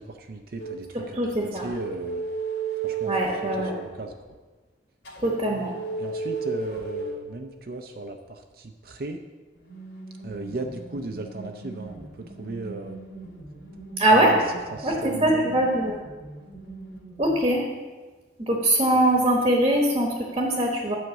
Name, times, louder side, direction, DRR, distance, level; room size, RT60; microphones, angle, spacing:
voice 1, 0.0-1.2 1.5-2.2 2.8-3.1 3.7-4.1 6.0-9.2 10.2-13.0 14.1-14.4 14.7-15.5, right 2 dB, 55° right, 4 dB, 0.5 m, -36 dB
sound 1, 0.6-0.8 1.5-3.8 5.0-7.2 9.5-17.4, right 4 dB, 75° left, 2.7 m, -35 dB
voice 2, 0.9-1.7 3.1-3.7 5.2-5.7 14.0-14.3 14.8-16.0 17.2-17.6 18.4-20.9, right 1 dB, 30° right, -1 dB, 1.1 m, -22 dB
9.5 x 5.0 x 7.0 m, 1.3 s
head